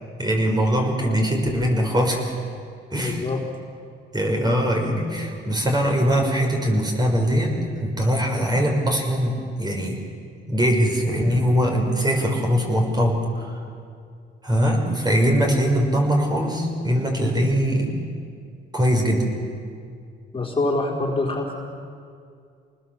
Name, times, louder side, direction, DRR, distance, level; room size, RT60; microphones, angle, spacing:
voice 1, 0.2-2.3 2.9-3.3 4.1-10.0 10.5-13.6 14.4-17.9 18.7-19.3, equal, 20° right, 1 dB, 5.9 m, -21 dB
voice 2, 3.0-3.4 20.3-21.5, left 2 dB, 25° left, -1 dB, 3.9 m, -25 dB
27.0 x 20.0 x 7.6 m, 2.3 s
cardioid pair, 90°, 20 cm